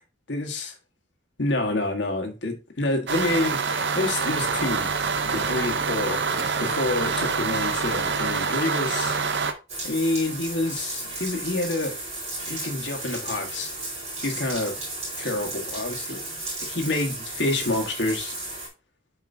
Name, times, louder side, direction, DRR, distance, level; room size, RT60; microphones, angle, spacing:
voice 1, 0.3-0.7 1.4-4.9 5.2-9.2 9.8-12.0 12.5-13.7 14.2-14.8 15.2-16.2 16.6-18.3, left 2 dB, 60° left, 1.5 m, -28 dB
sound 1, 3.1-9.5, right 5 dB, 55° right, 0.7 m, -26 dB
sound 2, 9.7-18.7, right 2 dB, 35° right, 3.9 m, -34 dB
7.9 x 4.8 x 2.7 m
head